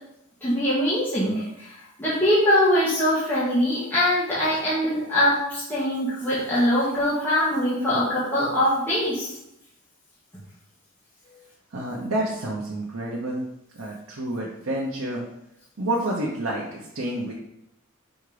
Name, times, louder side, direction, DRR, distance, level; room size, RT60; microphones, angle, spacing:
voice 1, 0.4-1.7 2.0-9.3, left 1 dB, 10° left, -11 dB, 1.6 m, -22 dB
voice 2, 11.7-13.4 13.7-15.2 15.8-17.3, right 1 dB, 85° right, -3 dB, 1.0 m, -29 dB
5.4 x 3.6 x 5.0 m, 0.82 s
head